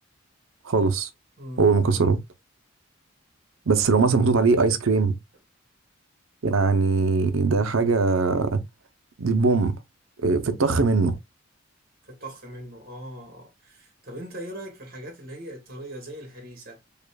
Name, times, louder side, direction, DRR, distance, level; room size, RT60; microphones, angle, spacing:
voice 1, 0.6-1.1 1.6-2.2 3.7-5.2 6.4-8.6 9.2-9.7 10.2-11.2, right 4 dB, 75° right, 0.7 m, -21 dB
voice 2, 1.4-2.0 12.0-16.8, right 1 dB, 45° right, 1.6 m, -40 dB
5.0 x 2.5 x 2.3 m
head